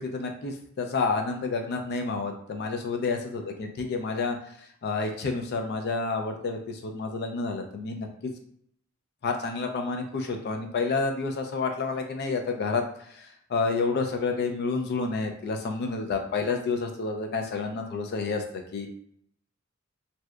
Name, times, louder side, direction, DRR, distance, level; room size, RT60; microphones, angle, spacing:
voice 1, 0.0-4.4 4.8-8.1 9.2-12.8 13.1-18.9, left 4 dB, 50° left, 4 dB, 0.4 m, -29 dB
2.7 x 2.1 x 2.2 m, 0.67 s
head